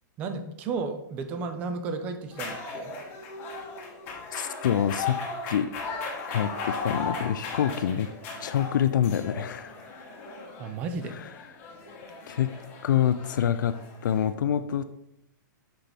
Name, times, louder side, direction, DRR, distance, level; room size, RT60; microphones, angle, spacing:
voice 1, 0.2-3.0 10.6-11.1, right 4 dB, 15° right, 8 dB, 0.3 m, -33 dB
sound 1, 2.3-14.3, left 4 dB, 20° left, 1.0 m, -37 dB
voice 2, 4.3-5.2 5.5-5.7 6.3-8.1 8.4-9.8 11.2-11.3 12.3-12.5 12.8-14.8, left 9 dB, 70° left, 11 dB, 0.4 m, -26 dB
6.0 x 5.6 x 3.4 m, 0.82 s
hypercardioid pair, 180°, 11 cm